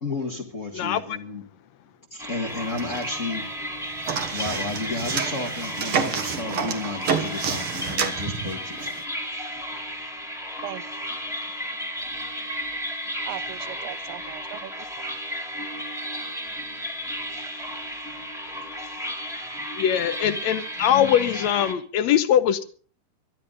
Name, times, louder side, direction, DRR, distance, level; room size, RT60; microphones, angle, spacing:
voice 1, 0.0-1.4 2.1-3.6 4.0-9.1, left 3 dB, 35° left, 3 dB, 1.3 m, -32 dB
sound 1, 2.2-21.7, equal, ahead, 1.8 m, -33 dB
sound 2, 2.5-3.4 3.6-9.0, right 6 dB, 50° right, 1.9 m, -29 dB
voice 2, 13.2-15.1, right 14 dB, 80° right, 14 dB, 1.4 m, -38 dB
voice 3, 19.8-22.6, left 10 dB, 70° left, 11 dB, 1.8 m, -21 dB
23.5 x 12.5 x 3.9 m, 0.41 s
omnidirectional pair, 4.0 m